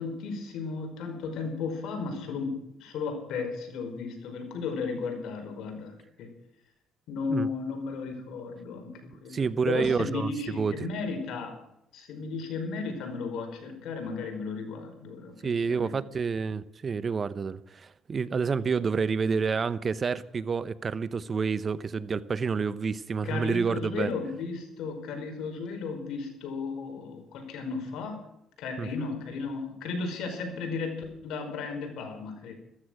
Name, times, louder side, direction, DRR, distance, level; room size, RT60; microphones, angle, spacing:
voice 1, 0.0-5.9 6.2-6.3 7.1-11.6 11.9-16.0 23.2-28.2 28.6-32.5, left 4 dB, 75° left, 5.1 m, -34 dB
voice 2, 9.3-10.3 10.6-10.7 15.4-24.1 28.8-28.9, right 5 dB, 35° right, 0.8 m, -28 dB
14.5 x 14.5 x 6.3 m
cardioid pair, 100°, 0 cm